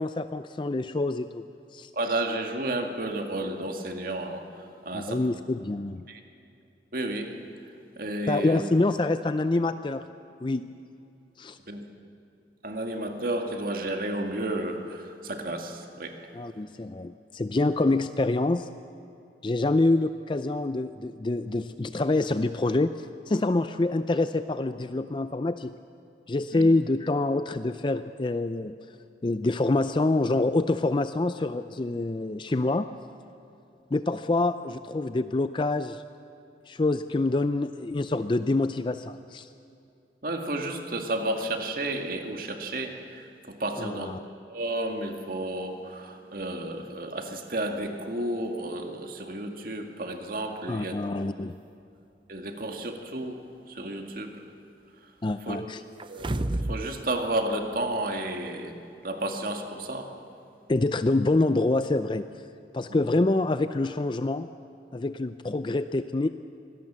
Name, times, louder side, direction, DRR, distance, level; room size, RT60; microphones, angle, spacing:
voice 1, 0.0-1.5 1.7-1.9 4.9-6.0 8.3-10.1 10.4-10.6 11.4-11.6 16.3-18.7 19.4-25.7 26.3-28.7 29.2-32.9 33.9-36.0 36.7-39.5 43.8-44.2 50.7-51.6 55.2-55.8 60.7-62.5 62.7-64.5 64.9-66.3, left 2 dB, 25° left, 11 dB, 0.4 m, -26 dB
voice 2, 1.9-5.2 6.1-6.2 6.9-7.3 8.0-8.6 11.7-11.8 12.6-16.2 26.5-26.6 40.2-44.1 44.5-51.0 52.3-53.4 53.7-54.3 55.5-55.6 56.1-58.7 59.0-60.1 62.9-63.0, right 1 dB, 50° right, 4 dB, 2.0 m, -32 dB
sound 1, 56.0-56.9 57.2-57.3, right 1 dB, 30° right, 0.6 m, -29 dB
24.5 x 18.0 x 7.5 m, 2.7 s
head